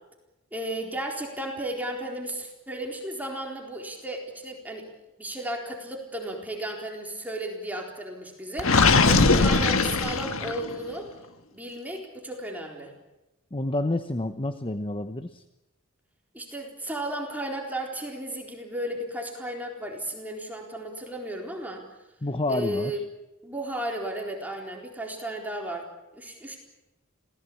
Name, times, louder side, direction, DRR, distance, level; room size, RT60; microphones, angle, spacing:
voice 1, 0.5-4.9 5.2-11.1 11.5-12.9 16.3-21.8 22.5-23.0 23.4-26.6, right 1 dB, 10° right, 0 dB, 4.1 m, -34 dB
Gurgling, 8.6-10.7, left 3 dB, 70° left, 1.6 m, -20 dB
voice 2, 13.5-15.4 22.2-23.0, left 2 dB, 25° left, 10 dB, 1.0 m, -29 dB
27.0 x 18.0 x 8.7 m, 0.97 s
head